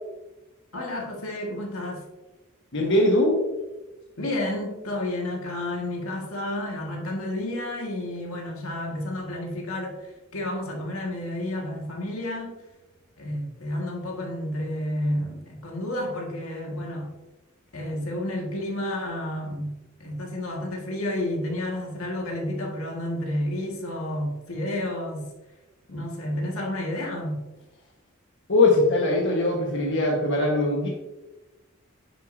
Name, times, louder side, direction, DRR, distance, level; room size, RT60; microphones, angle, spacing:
voice 1, 0.7-2.0 4.2-12.5 13.2-17.1 17.7-25.3 25.9-27.4, left 1 dB, 80° left, 0 dB, 1.7 m, -31 dB
voice 2, 2.7-3.4 28.5-30.9, left 2 dB, 60° left, -1 dB, 1.3 m, -21 dB
9.8 x 6.5 x 2.6 m, 1.1 s
head